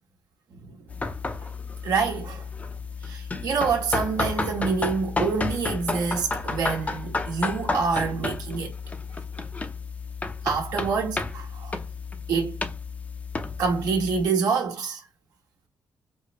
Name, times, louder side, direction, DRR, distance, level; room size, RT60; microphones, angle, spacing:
sound 1, 0.9-14.3, left 3 dB, 20° left, 0.5 m, -32 dB
voice 1, 1.8-2.4 3.0-8.7 10.4-11.8 12.3-12.6 13.6-15.0, right 5 dB, 75° right, 1.3 m, -26 dB
4.5 x 2.0 x 2.9 m
cardioid pair, 110°, 7 cm